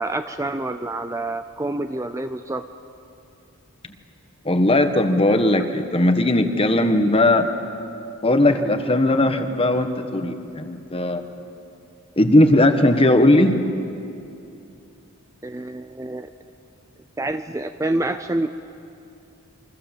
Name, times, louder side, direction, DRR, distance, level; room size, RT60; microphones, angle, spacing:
voice 1, 0.0-2.7 15.4-16.3 17.2-18.5, right 2 dB, 15° right, 8 dB, 0.5 m, -27 dB
voice 2, 4.4-7.5 8.2-11.2 12.2-13.6, left 1 dB, 25° left, 7 dB, 1.4 m, -18 dB
28.5 x 24.5 x 7.5 m, 2.7 s
head